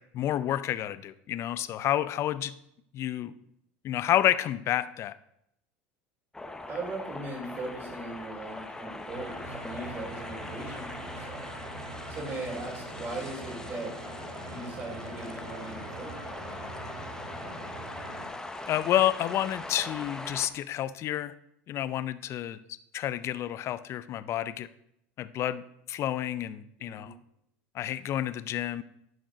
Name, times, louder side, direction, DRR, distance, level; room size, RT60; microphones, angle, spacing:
voice 1, 0.1-2.5 2.9-3.3 3.8-5.1 18.7-21.3 21.7-22.6 22.9-24.7 25.2-27.1 27.7-28.8, left 12 dB, 45° left, 15 dB, 0.5 m, -29 dB
sound 1, 6.3-20.5, left 2 dB, 10° left, 0.9 m, -41 dB
voice 2, 6.7-11.5 12.1-14.0 14.4-16.4 26.8-27.1, right 2 dB, 35° right, -1 dB, 4.0 m, -39 dB
sound 2, 9.1-18.3, right 2 dB, 65° right, 2.7 m, -43 dB
11.0 x 5.2 x 5.1 m, 0.76 s
supercardioid pair, 110°, 7 cm